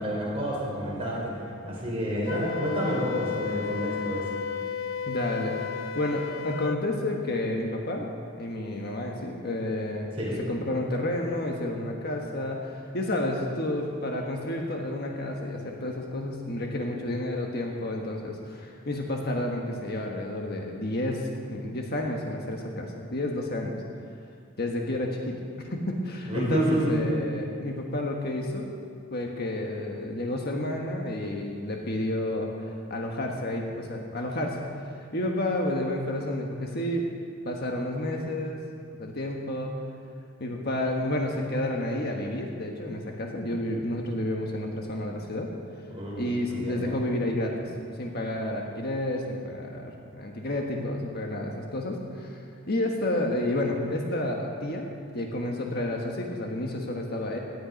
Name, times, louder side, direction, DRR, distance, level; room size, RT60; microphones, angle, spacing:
voice 1, 0.0-4.3 10.2-10.4 26.3-26.9 45.9-46.2 46.5-46.9, equal, 25° right, -5 dB, 4.7 m, -29 dB
Wind instrument woodwind instrument, 2.3-6.8, left 7 dB, 70° left, 0.5 m, -33 dB
voice 2, 5.0-8.1 8.4-10.1 10.5-23.7 24.6-28.7 29.1-32.5 32.9-34.6 35.0-37.0 37.4-38.6 39.0-39.7 40.4-45.5 46.2-47.6 48.0-54.9 55.1-57.4, left 1 dB, 45° left, 1 dB, 1.4 m, -30 dB
18.0 x 11.5 x 5.3 m, 2.3 s
head